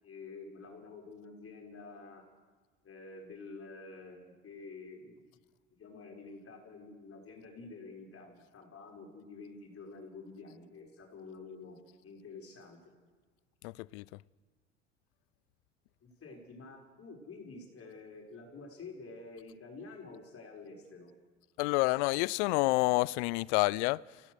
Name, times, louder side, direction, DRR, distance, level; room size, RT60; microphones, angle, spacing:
voice 1, 0.0-2.2 2.8-5.4 5.8-11.8 12.0-12.9 16.0-21.1, left 3 dB, 40° left, 6.1 m, -49 dB
voice 2, 13.6-14.0 21.6-24.2, left 22 dB, 70° left, 0.6 m, -29 dB
28.5 x 16.5 x 6.6 m
hypercardioid pair, 65°, 35 cm